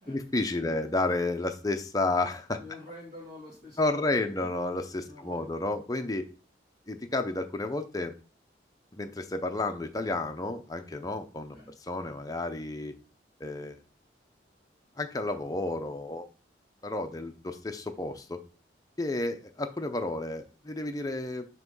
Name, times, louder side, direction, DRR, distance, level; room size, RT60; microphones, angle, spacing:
voice 1, 0.1-2.6 3.8-6.3 6.9-8.1 8.9-12.9 13.4-13.8 15.0-16.2 16.8-18.4 19.0-21.5, left 2 dB, 20° left, 6 dB, 0.5 m, -31 dB
voice 2, 2.6-4.5 5.0-5.5 11.5-11.7 17.0-17.2, left 1 dB, 45° right, -6 dB, 2.0 m, -48 dB
5.8 x 3.0 x 5.3 m, 0.36 s
head